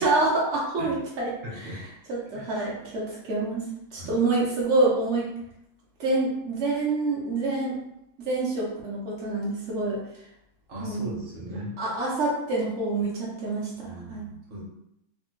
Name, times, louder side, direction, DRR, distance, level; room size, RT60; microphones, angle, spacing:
voice 1, 0.0-1.8 2.1-3.6 3.9-5.3 6.0-7.7 8.2-10.0 10.8-11.1 11.8-14.2, right 2 dB, 75° right, -5 dB, 0.6 m, -27 dB
voice 2, 1.4-1.8 2.3-2.5 3.9-4.2 10.7-11.7 13.8-14.6, equal, 50° right, -5 dB, 0.9 m, -38 dB
3.3 x 2.1 x 3.0 m, 0.80 s
omnidirectional pair, 2.2 m